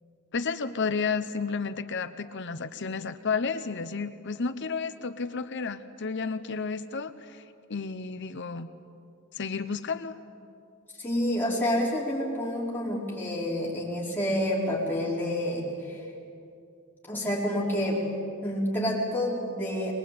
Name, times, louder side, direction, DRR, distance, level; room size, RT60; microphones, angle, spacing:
voice 1, 0.3-7.4 7.7-8.7 9.3-10.1, left 5 dB, 55° left, 11 dB, 0.8 m, -32 dB
voice 2, 11.0-16.1 17.0-18.0 18.4-19.9, left 1 dB, 10° left, -5 dB, 4.8 m, -28 dB
22.5 x 21.0 x 8.6 m, 2.5 s
head